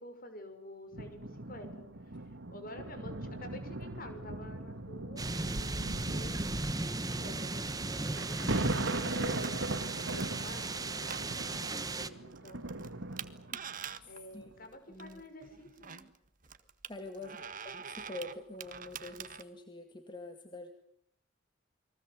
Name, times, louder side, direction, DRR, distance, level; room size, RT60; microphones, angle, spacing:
voice 1, 0.0-1.9 2.5-7.5 8.1-12.9 13.9-16.0 17.1-17.5, left 1 dB, 45° left, 8 dB, 6.1 m, -49 dB
sound 1, 0.9-13.7 14.4-14.5, right 2 dB, 75° right, 2.1 m, -39 dB
sound 2, 5.2-12.1, right 2 dB, 20° right, 1.2 m, -36 dB
sound 3, 8.0-19.4, right 7 dB, 45° right, 1.5 m, -47 dB
voice 2, 14.0-14.4 14.7-15.2 16.9-20.7, left 2 dB, 25° left, 6 dB, 2.0 m, -46 dB
29.5 x 22.5 x 8.0 m, 0.69 s
head